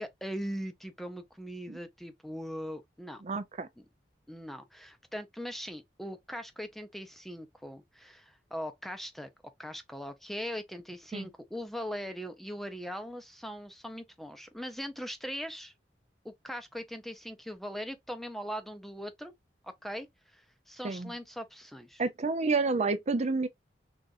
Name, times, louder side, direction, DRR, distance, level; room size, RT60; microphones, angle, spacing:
voice 1, 0.0-3.2 4.3-9.3 9.6-15.7 16.2-19.3 19.6-20.1 20.3-22.0, equal, ahead, 0.6 m, -40 dB
voice 2, 3.2-3.7 11.1-11.3 20.8-21.1 22.0-23.5, right 3 dB, 40° right, 0.5 m, -29 dB
6.3 x 2.5 x 2.6 m
head